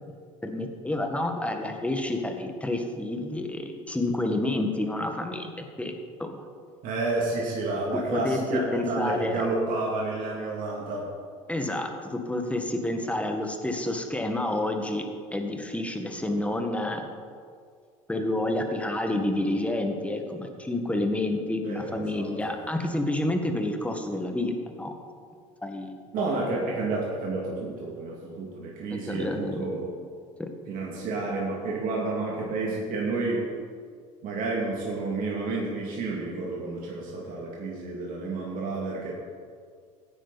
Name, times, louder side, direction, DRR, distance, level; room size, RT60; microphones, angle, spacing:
voice 1, 0.4-5.9 6.2-6.4 7.9-9.3 11.5-17.1 18.1-24.9 25.6-26.4 29.1-29.8 30.4-30.5, left 1 dB, 5° left, 4 dB, 1.7 m, -29 dB
voice 2, 6.8-11.1 21.6-22.5 26.1-30.0 30.7-33.5 34.2-39.1, right 3 dB, 55° right, -3 dB, 2.5 m, -30 dB
15.5 x 9.4 x 4.2 m, 2.1 s
hypercardioid pair, 80°, 17 cm